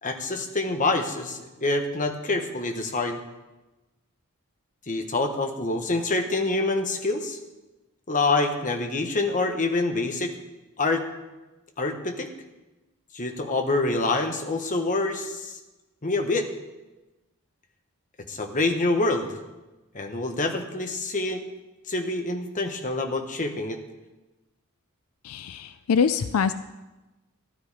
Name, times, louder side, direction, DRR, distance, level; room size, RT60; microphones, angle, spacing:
voice 1, 0.0-3.2 4.9-7.4 8.1-10.3 10.8-11.0 11.8-12.3 13.1-15.6 16.0-16.5 18.3-19.4 19.9-21.4 21.9-23.8, left 2 dB, 40° left, 5 dB, 1.3 m, -26 dB
voice 2, 25.2-26.5, left 6 dB, 80° left, 12 dB, 0.4 m, -24 dB
13.0 x 12.5 x 4.9 m, 1.1 s
head